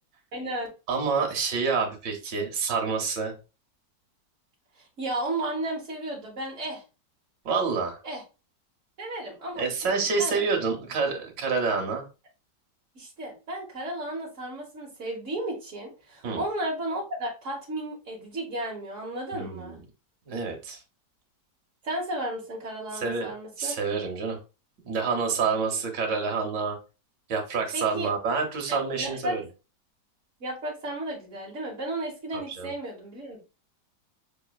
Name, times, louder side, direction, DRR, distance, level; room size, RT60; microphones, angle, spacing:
voice 1, 0.3-0.7 4.8-6.8 8.0-8.2 9.0-10.4 12.9-19.8 21.8-23.7 27.7-28.1 28.7-29.4 30.4-33.4, right 1 dB, 50° right, -4 dB, 1.4 m, -34 dB
voice 2, 0.9-3.3 7.4-8.0 9.6-12.0 16.2-16.4 19.3-19.8 20.2-20.8 22.9-23.3 23.6-24.4 24.8-26.8 27.3-29.4 32.3-32.7, right 5 dB, 80° right, 2 dB, 1.7 m, -28 dB
6.0 x 3.2 x 2.3 m, 0.31 s
omnidirectional pair, 1.9 m